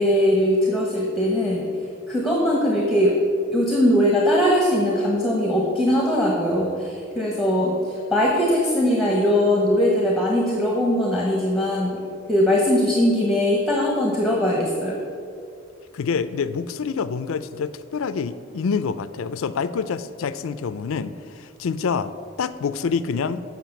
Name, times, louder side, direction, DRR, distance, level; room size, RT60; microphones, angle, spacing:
voice 1, 0.0-1.7 2.1-3.2 3.5-12.0 12.3-15.0, left 1 dB, ahead, -2 dB, 1.0 m, -20 dB
voice 2, 15.9-22.1 22.4-23.4, left 5 dB, 85° left, 14 dB, 0.4 m, -26 dB
7.5 x 5.7 x 7.0 m, 2.4 s
head